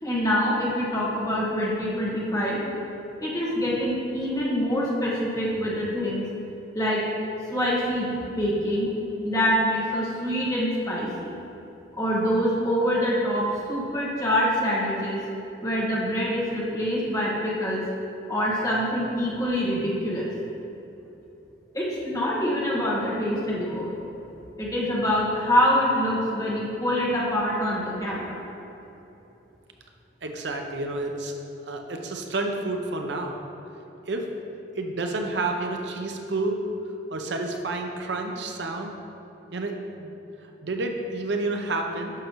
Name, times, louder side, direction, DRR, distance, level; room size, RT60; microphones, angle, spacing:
voice 1, 0.0-2.6 3.2-6.3 6.7-7.0 7.5-8.9 9.2-11.3 12.0-15.2 15.6-17.8 18.3-20.3 21.7-23.9 24.6-28.4, equal, 20° left, -6 dB, 1.5 m, -25 dB
voice 2, 30.2-31.3 31.6-33.4 34.0-34.3 34.8-36.6 37.1-38.9 39.5-40.1 40.6-42.1, right 2 dB, 70° right, 3 dB, 0.7 m, -29 dB
10.5 x 6.6 x 3.0 m, 2.9 s
head